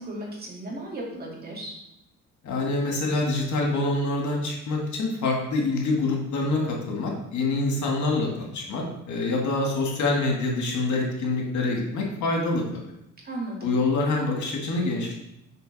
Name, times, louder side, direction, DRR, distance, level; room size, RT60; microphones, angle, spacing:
voice 1, 0.0-1.8 13.2-13.7, right 1 dB, 30° right, -3 dB, 2.4 m, -35 dB
voice 2, 2.4-12.8 13.6-15.2, left 2 dB, 70° left, 0 dB, 1.9 m, -26 dB
6.7 x 5.3 x 4.0 m, 0.83 s
cardioid pair, 90°, 30 cm